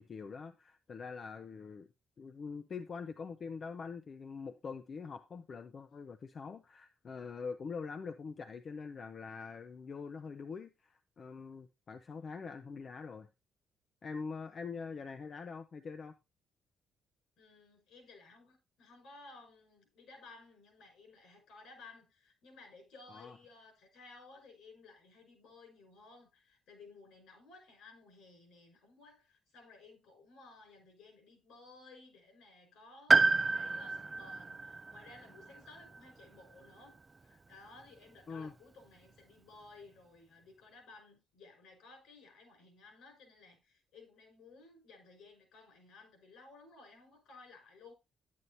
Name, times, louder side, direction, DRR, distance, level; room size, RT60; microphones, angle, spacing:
voice 1, 0.0-1.9 2.2-13.3 14.0-16.1 23.1-23.4 38.3-38.5, left 5 dB, 45° left, 0.7 m, -44 dB
voice 2, 17.4-47.9, left 3 dB, 85° left, 5.3 m, -57 dB
Piano, 33.1-37.0 37.2-37.3 38.5-38.6, right 3 dB, 25° right, 0.4 m, -31 dB
9.5 x 9.4 x 2.7 m
cardioid pair, 90°, 0 cm